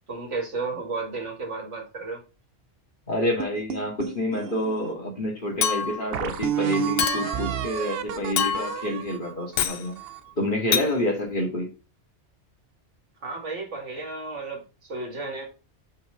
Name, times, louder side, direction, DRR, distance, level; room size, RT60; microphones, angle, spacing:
voice 1, 0.1-2.2 13.2-15.5, right 3 dB, 85° right, 1 dB, 2.3 m, -33 dB
voice 2, 3.1-10.0 10.4-11.7, left 1 dB, 45° left, -1 dB, 2.4 m, -28 dB
sound 1, 3.4-4.9 5.5-5.6 6.1-10.3, right 9 dB, 65° right, 0.8 m, -31 dB
Chink clink, 5.6-6.1 7.0-7.5 8.4-8.9 9.6-9.8 10.7-10.9, left 8 dB, 60° left, 0.8 m, -26 dB
6.2 x 5.4 x 3.7 m, 0.32 s
omnidirectional pair, 1.2 m